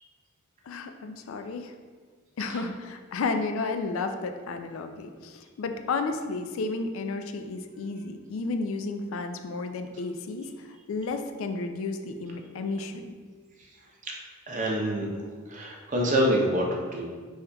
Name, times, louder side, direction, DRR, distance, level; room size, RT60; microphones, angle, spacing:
voice 1, 0.7-1.7 2.4-13.1, left 3 dB, 70° left, 7 dB, 0.3 m, -32 dB
voice 2, 14.5-15.1 15.5-17.0, equal, 35° right, -1 dB, 0.6 m, -26 dB
5.4 x 3.5 x 2.2 m, 1.5 s
head